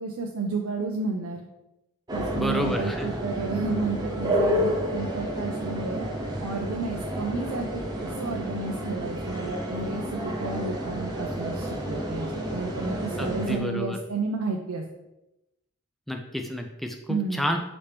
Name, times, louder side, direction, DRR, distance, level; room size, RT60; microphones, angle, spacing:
voice 1, 0.0-1.4 2.1-6.0 6.4-7.8 8.2-14.8 17.1-17.5, right 4 dB, 85° right, 1 dB, 0.5 m, -31 dB
sound 1, 2.1-13.6, equal, 20° right, 0.7 m, -30 dB
voice 2, 2.3-3.1 13.2-14.0 16.1-17.6, left 1 dB, ahead, 4 dB, 0.3 m, -30 dB
5.1 x 2.9 x 3.3 m, 0.93 s
head